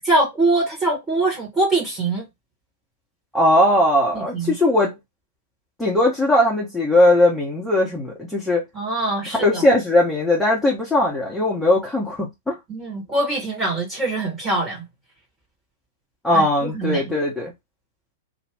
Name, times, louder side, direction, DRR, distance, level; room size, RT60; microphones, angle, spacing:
voice 1, 0.0-2.2 4.1-4.6 8.7-9.6 12.7-14.8 16.3-17.0, right 2 dB, 20° right, 1.4 m, -23 dB
voice 2, 3.3-4.9 5.8-8.6 9.4-12.6 16.2-17.5, left 1 dB, 5° left, 1.0 m, -19 dB
2.6 x 2.5 x 3.5 m
figure-of-eight pair, 100°, 0 cm